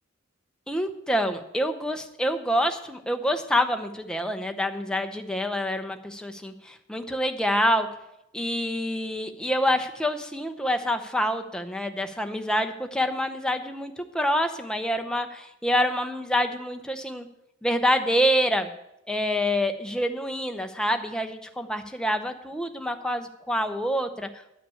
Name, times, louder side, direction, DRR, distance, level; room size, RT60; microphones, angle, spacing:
voice 1, 0.7-7.9 8.3-17.3 17.6-18.7 19.1-24.3, equal, 5° left, 6 dB, 0.8 m, -27 dB
11.0 x 5.9 x 8.5 m, 0.83 s
head